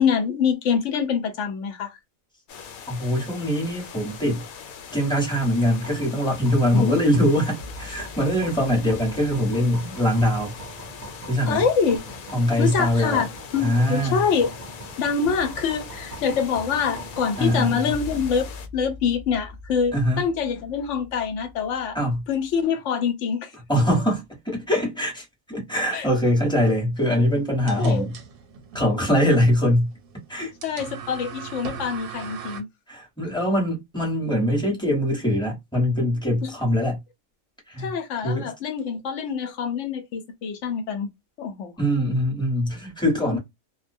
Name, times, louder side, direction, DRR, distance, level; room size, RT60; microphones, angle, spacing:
voice 1, 0.0-1.9 6.7-7.0 11.4-12.2 12.6-13.3 13.5-14.5 15.0-18.5 18.7-22.0 22.3-23.5 25.9-26.1 27.7-28.1 30.6-32.7 35.3-35.4 36.4-36.5 37.8-41.1 41.4-41.7 43.3-43.4, left 6 dB, 65° left, 0.9 m, -25 dB
sound 1, 2.5-18.7, left 6 dB, 90° left, 1.1 m, -41 dB
voice 2, 2.9-4.4 4.9-10.5 11.3-11.6 12.3-13.3 13.6-14.2 17.4-17.9 19.9-20.2 21.9-22.2 23.7-28.1 28.7-29.9 30.3-30.5 32.9-37.0 37.7-37.9 38.2-38.5 41.8-43.4, equal, 5° left, 0.8 m, -22 dB
sound 2, 5.4-22.6, right 1 dB, 55° right, 0.5 m, -41 dB
sound 3, 26.9-32.6, right 7 dB, 85° right, 1.0 m, -40 dB
2.3 x 2.1 x 2.5 m
omnidirectional pair, 1.5 m